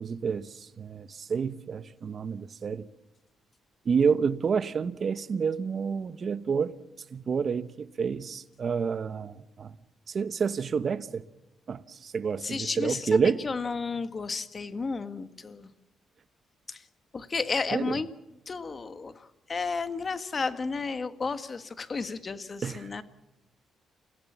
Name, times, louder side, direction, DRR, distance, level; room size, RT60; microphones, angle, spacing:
voice 1, 0.0-2.9 3.8-6.7 7.1-9.7 10.1-11.2 11.7-13.4 17.7-18.0 22.6-22.9, right 6 dB, 45° right, 1.0 m, -29 dB
voice 2, 12.4-15.7 16.7-16.8 17.1-18.1 18.5-23.0, left 4 dB, 35° left, 1.5 m, -33 dB
30.0 x 16.5 x 7.4 m
cardioid pair, 90°, 0 cm